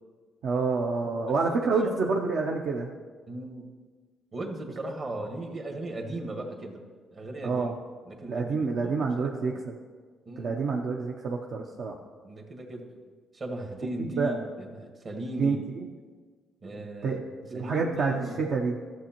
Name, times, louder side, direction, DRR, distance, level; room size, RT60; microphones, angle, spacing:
voice 1, 0.4-2.9 7.4-7.7 8.2-9.7 10.4-12.0 14.0-14.5 15.4-15.9 17.0-17.2 17.5-18.8, right 4 dB, 70° right, 0 dB, 0.6 m, -28 dB
voice 2, 1.2-1.6 1.8-1.9 3.3-3.7 4.3-6.8 7.1-7.7 8.0-9.6 10.2-10.6 12.2-12.9 13.3-15.6 16.6-18.4, right 1 dB, 45° right, 2 dB, 1.5 m, -37 dB
12.5 x 7.1 x 2.9 m, 1.5 s
cardioid pair, 90°, 0 cm